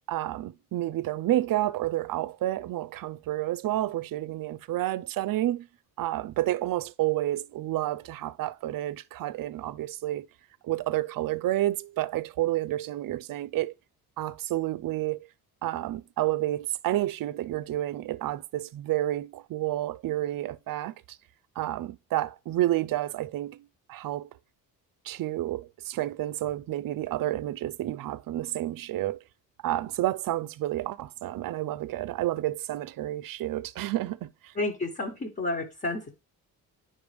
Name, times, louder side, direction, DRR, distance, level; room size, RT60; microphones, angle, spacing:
voice 1, 0.1-5.7 6.0-10.3 10.6-13.7 14.2-15.3 15.6-21.0 21.6-24.3 25.1-29.2 29.6-34.5, right 14 dB, 60° right, 0.5 m, -30 dB
voice 2, 34.5-36.1, left 2 dB, 30° left, 1.4 m, -31 dB
9.5 x 5.5 x 3.5 m
cardioid pair, 105°, 39 cm